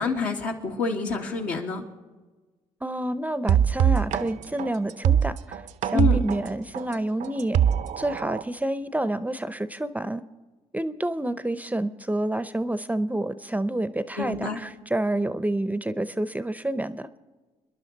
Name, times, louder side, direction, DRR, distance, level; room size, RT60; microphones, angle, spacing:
voice 1, 0.0-1.8 5.9-6.2 14.2-14.6, left 5 dB, 75° left, 0 dB, 2.0 m, -27 dB
voice 2, 2.8-7.6 8.0-10.2 10.7-17.1, right 1 dB, 10° right, 14 dB, 0.6 m, -28 dB
sound 1, 3.5-8.4, right 9 dB, 65° right, 0.6 m, -22 dB
26.5 x 11.0 x 4.0 m, 1.3 s
supercardioid pair, 55°, 14 cm